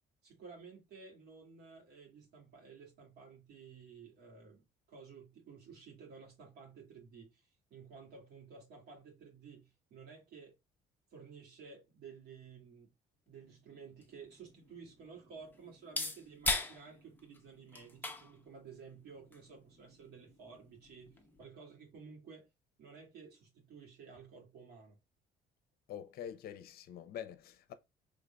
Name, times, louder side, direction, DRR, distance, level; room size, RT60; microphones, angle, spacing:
voice 1, 0.2-4.6 4.9-7.4 7.7-10.6 11.1-12.9 13.3-22.5 22.8-25.0, right 5 dB, 70° right, 2.1 m, -54 dB
sound 1, 13.4-21.4, left 3 dB, 10° left, 0.7 m, -42 dB
voice 2, 25.9-27.7, left 9 dB, 65° left, 0.6 m, -45 dB
3.8 x 3.4 x 2.2 m
cardioid pair, 110°, 17 cm